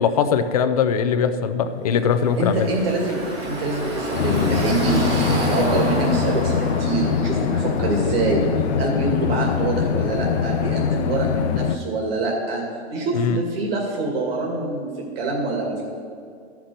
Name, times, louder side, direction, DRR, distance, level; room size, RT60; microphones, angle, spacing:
voice 1, 0.0-2.7 13.1-13.4, left 7 dB, 35° left, 9 dB, 0.5 m, -21 dB
Car passing by / Traffic noise roadway noise, 2.0-8.9, right 1 dB, 15° right, 1.3 m, -28 dB
voice 2, 2.4-8.5 8.8-12.6 12.9-15.8, right 2 dB, 60° right, -1 dB, 2.3 m, -25 dB
sound 1, 4.1-11.8, left 8 dB, 75° left, 0.6 m, -23 dB
13.0 x 5.9 x 6.5 m, 2.3 s
hypercardioid pair, 170°, 33 cm